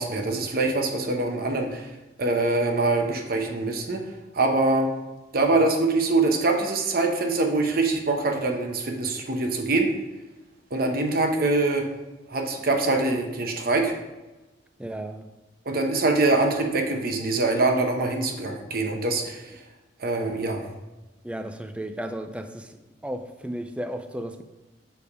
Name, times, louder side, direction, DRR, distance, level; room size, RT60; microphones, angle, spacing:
voice 1, 0.0-1.9 2.2-4.0 4.3-4.9 5.3-9.9 10.7-11.9 12.3-13.9 15.7-19.5 20.0-20.6, right 2 dB, 50° right, 0.8 m, -24 dB
voice 2, 14.8-15.3 21.2-22.8 23.0-24.4, right 1 dB, 5° right, 0.3 m, -34 dB
7.1 x 3.5 x 4.8 m
head